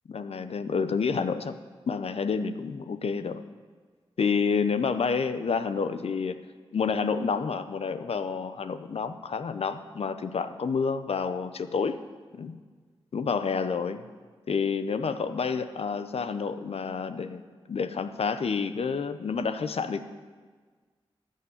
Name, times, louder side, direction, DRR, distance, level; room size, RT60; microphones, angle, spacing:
voice 1, 0.1-1.5 1.9-3.4 4.2-6.4 6.7-12.0 12.3-12.6 13.1-14.0 14.5-17.4 17.7-20.0, left 5 dB, 75° left, 11 dB, 0.7 m, -29 dB
13.5 x 6.5 x 9.4 m, 1.5 s
cardioid pair, 45°, 10 cm